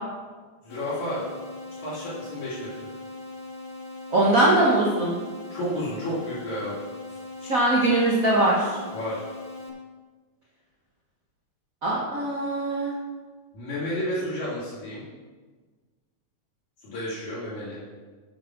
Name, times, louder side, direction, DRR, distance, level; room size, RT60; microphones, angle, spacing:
voice 1, 0.6-1.3 1.8-2.9 5.5-6.8 7.1-7.2 8.9-9.3 12.7-12.9 13.5-15.0 16.8-17.8, equal, 65° left, -10 dB, 4.2 m, -31 dB
sound 1, 0.7-9.7, left 2 dB, 85° left, 3.1 m, -40 dB
voice 2, 4.1-5.1 7.4-8.8 11.8-12.9, right 1 dB, 70° right, -4 dB, 0.7 m, -21 dB
7.8 x 7.8 x 6.0 m, 1.4 s
omnidirectional pair, 3.6 m